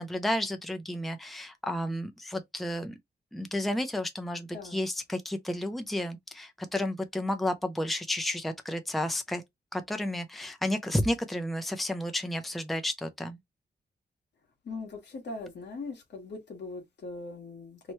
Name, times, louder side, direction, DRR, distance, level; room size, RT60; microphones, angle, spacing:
voice 1, 0.0-2.9 3.3-9.4 9.7-13.4, left 1 dB, ahead, 0.5 m, -32 dB
voice 2, 4.5-4.8 14.6-17.8, left 3 dB, 80° left, 1.3 m, -40 dB
3.1 x 2.2 x 4.2 m
wide cardioid pair, 110°, 18 cm